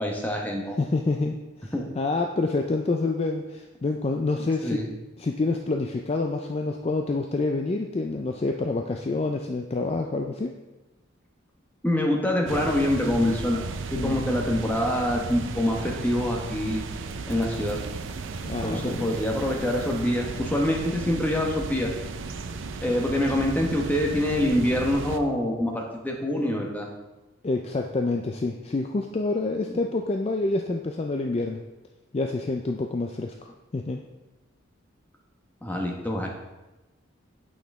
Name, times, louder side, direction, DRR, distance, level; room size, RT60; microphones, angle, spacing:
voice 1, 0.0-0.8 1.7-1.8 4.6-4.9 11.8-13.6 13.9-16.8 17.3-17.8 18.6-21.9 22.8-26.9 29.7-29.8 35.6-36.3, left 1 dB, 10° left, 0 dB, 0.9 m, -25 dB
voice 2, 0.8-4.8 5.2-10.5 13.9-14.2 18.5-19.2 27.4-31.6 32.1-34.0, left 3 dB, 30° left, 3 dB, 0.3 m, -27 dB
sound 1, 12.5-25.2, right 4 dB, 65° right, 0.5 m, -35 dB
8.5 x 5.7 x 3.6 m, 1.1 s
head